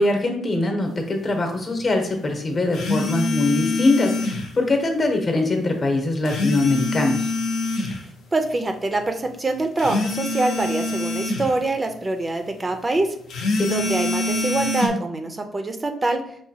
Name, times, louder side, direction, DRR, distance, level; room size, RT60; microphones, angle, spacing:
voice 1, 0.0-7.3 13.5-13.7, left 2 dB, 40° left, 4 dB, 0.8 m, -22 dB
sound 1, 2.7-4.5 6.3-8.0 9.8-11.5 13.3-14.9, left 2 dB, 80° left, 0.6 m, -25 dB
voice 2, 8.3-16.2, right 2 dB, 25° right, 5 dB, 0.4 m, -25 dB
4.9 x 2.3 x 2.7 m, 0.64 s
cardioid pair, 90°, 0 cm